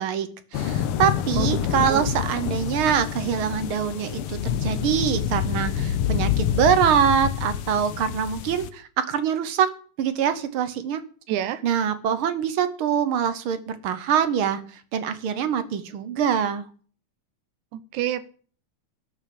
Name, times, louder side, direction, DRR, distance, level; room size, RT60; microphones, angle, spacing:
voice 1, 0.0-9.7 10.0-11.0 11.6-16.7, right 8 dB, 65° right, 11 dB, 1.4 m, -24 dB
sound 1, 0.5-8.7, left 9 dB, 70° left, 1.3 m, -27 dB
voice 2, 1.4-2.1 11.3-11.6 17.7-18.3, right 12 dB, 90° right, 14 dB, 2.3 m, -28 dB
12.0 x 6.4 x 8.5 m, 0.44 s
omnidirectional pair, 3.3 m